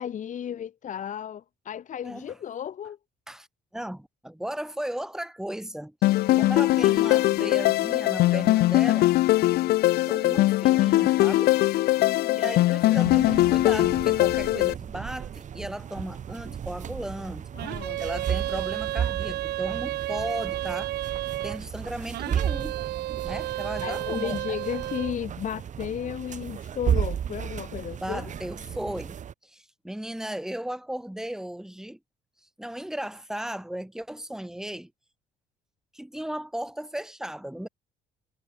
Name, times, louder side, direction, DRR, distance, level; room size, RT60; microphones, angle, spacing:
voice 1, 0.0-3.0 12.0-12.5 17.5-18.0 23.8-28.3, left 9 dB, 50° left, 2.0 m, -34 dB
voice 2, 3.7-5.9 6.4-9.1 10.1-11.5 12.3-17.5 18.0-20.9 21.4-22.8 23.2-24.4 28.0-32.0 32.6-34.9 35.9-37.7, right 1 dB, 5° right, 2.7 m, -35 dB
sound 1, 6.0-14.7, left 17 dB, 65° left, 0.5 m, -21 dB
sound 2, 13.0-29.3, right 8 dB, 45° right, 2.8 m, -34 dB
sound 3, 17.6-21.6 22.1-25.2, right 16 dB, 75° right, 1.5 m, -32 dB
cardioid pair, 110°, 17 cm